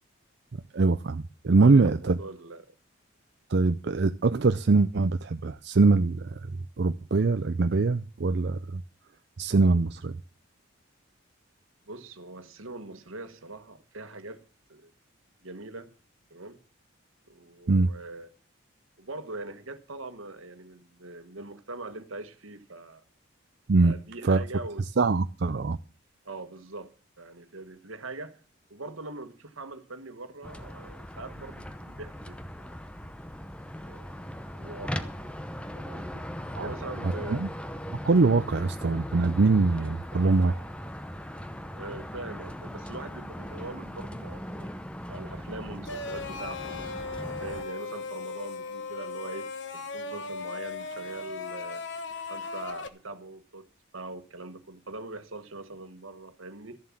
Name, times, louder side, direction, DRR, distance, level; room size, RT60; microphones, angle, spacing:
voice 1, 0.7-2.2 3.5-6.4 6.8-8.8 9.4-10.2 17.7-17.9 23.7-23.9 24.2-24.4 25.0-25.8 36.5-36.7 37.0-37.5 38.0-40.6, right 3 dB, 55° right, 0.5 m, -23 dB
voice 2, 1.6-2.7 11.9-14.4 14.7-14.9 15.4-15.9 16.3-16.6 17.3-18.3 19.0-23.0 23.8-24.9 26.2-28.4 28.7-32.8 33.8-34.1 34.5-35.2 35.7-36.3 36.6-37.4 41.7-44.7 45.1-51.8 52.3-53.7 53.9-56.8, right 2 dB, 80° right, 1.5 m, -42 dB
sound 1, 30.4-47.6, equal, 5° left, 0.7 m, -39 dB
sound 2, 45.8-52.9, left 4 dB, 60° left, 1.1 m, -37 dB
13.5 x 7.5 x 7.3 m
head